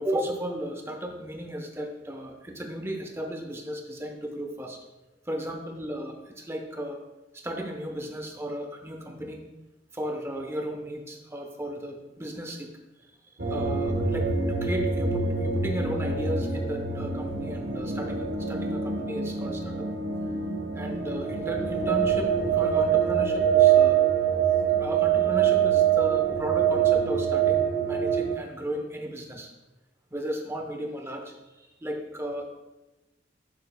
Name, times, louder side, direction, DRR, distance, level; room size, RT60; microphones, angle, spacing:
voice 1, 0.0-4.8 5.3-7.0 7.3-9.4 9.9-12.7 13.5-19.9 20.7-24.0 24.8-29.5 30.1-32.4, equal, 15° right, 3 dB, 0.8 m, -35 dB
sound 1, 13.4-28.3, right 8 dB, 60° right, 1.1 m, -24 dB
8.5 x 7.6 x 2.2 m, 1.0 s
head